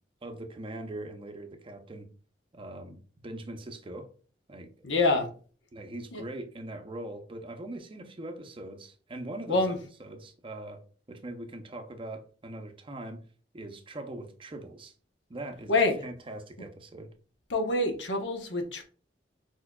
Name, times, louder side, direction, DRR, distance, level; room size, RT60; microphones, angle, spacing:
voice 1, 0.2-2.1 2.5-4.1 4.5-4.9 5.7-9.7 10.0-10.8 11.1-13.2 13.5-14.9 15.3-17.1, right 1 dB, 30° right, 0.5 m, -41 dB
voice 2, 4.8-5.3 6.1-6.2 9.5-9.8 15.7-16.0 17.5-18.8, left 2 dB, 75° left, 1.0 m, -26 dB
4.6 x 4.4 x 2.3 m
head